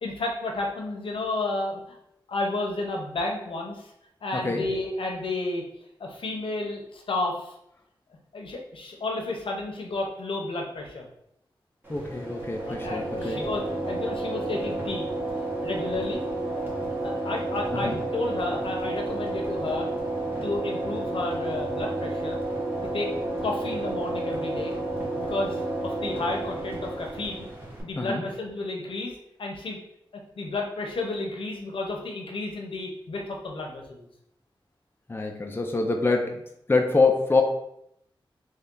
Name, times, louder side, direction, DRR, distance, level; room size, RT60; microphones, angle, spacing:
voice 1, 0.0-2.0 2.3-3.9 4.2-5.6 6.0-7.5 8.3-11.1 12.6-15.1 15.6-16.2 16.5-16.7 17.0-19.9 20.4-22.4 22.9-23.1 23.4-24.7 25.2-27.5 27.8-29.8 30.4-34.1, left 2 dB, 80° left, 1 dB, 0.8 m, -32 dB
voice 2, 4.3-4.6 11.9-13.4 17.7-18.0 28.0-28.2 35.1-36.4 36.7-37.4, left 3 dB, 25° left, 2 dB, 0.5 m, -25 dB
sound 1, 11.8-27.8, right 2 dB, 25° right, 1.4 m, -31 dB
3.2 x 2.8 x 3.6 m, 0.76 s
wide cardioid pair, 70°, 9 cm